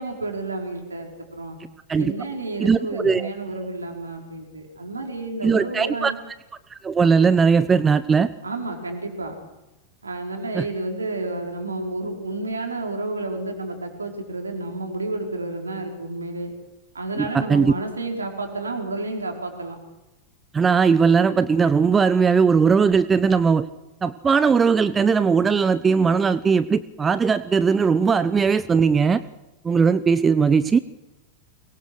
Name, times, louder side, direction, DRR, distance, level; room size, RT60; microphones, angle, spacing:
voice 1, 0.0-1.6 2.0-6.2 8.4-9.4 10.0-16.5 16.9-19.8, right 2 dB, 75° right, 2 dB, 5.1 m, -30 dB
voice 2, 2.6-3.3 5.4-6.1 6.7-8.3 10.5-10.7 17.2-17.7 20.5-23.7 24.0-29.2 29.6-30.8, right 5 dB, 15° right, 15 dB, 0.9 m, -19 dB
23.5 x 22.5 x 6.5 m, 0.98 s
figure-of-eight pair, 90°, 0 cm